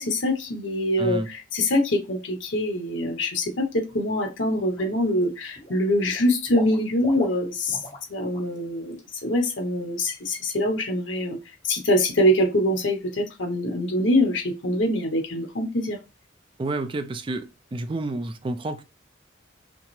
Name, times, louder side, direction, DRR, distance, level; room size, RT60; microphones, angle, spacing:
voice 1, 0.0-7.8 8.1-11.4 11.6-16.0, left 1 dB, 80° left, 1.0 m, -24 dB
voice 2, 1.0-1.3 16.6-18.8, right 2 dB, 25° right, 0.4 m, -30 dB
Water / Liquid, 3.9-4.2 4.6-5.2 5.5-8.1 8.3-8.6 8.9-9.0, equal, 40° left, 1.1 m, -39 dB
5.7 x 2.0 x 3.1 m
head